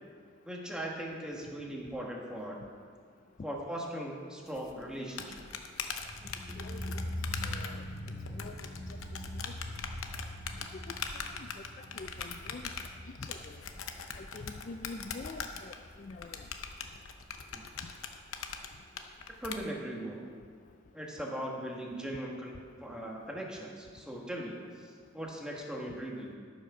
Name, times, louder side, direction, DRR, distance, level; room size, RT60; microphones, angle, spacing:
voice 1, 0.4-2.6 3.4-5.4 6.5-6.6 17.5-17.6 19.4-20.3 20.9-22.5 22.8-26.3, right 1 dB, 5° right, -2 dB, 1.3 m, -39 dB
sound 1, 4.6-19.6, left 6 dB, 85° left, 0.8 m, -41 dB
sound 2, 5.9-16.9 17.1-17.2, left 1 dB, 25° right, 2.7 m, -43 dB
voice 2, 6.6-7.0 7.4-7.8 8.3-8.5 9.3-9.5 10.7-10.8 11.1-11.5 11.9-12.7 13.3-13.6 14.1-16.5, left 3 dB, 40° left, 4 dB, 0.4 m, -45 dB
13.0 x 5.9 x 6.0 m, 2.1 s
head